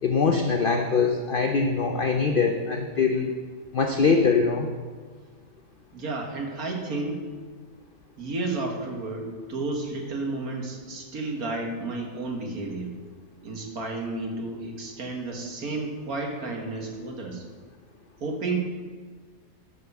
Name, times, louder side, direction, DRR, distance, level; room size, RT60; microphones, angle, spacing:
voice 1, 0.0-3.4 3.7-4.7, left 5 dB, 80° left, 4 dB, 0.4 m, -23 dB
voice 2, 5.9-7.2 8.2-12.9 13.4-17.4 18.2-18.6, right 3 dB, 60° right, 1 dB, 1.9 m, -32 dB
9.7 x 5.3 x 6.8 m, 1.5 s
omnidirectional pair, 1.8 m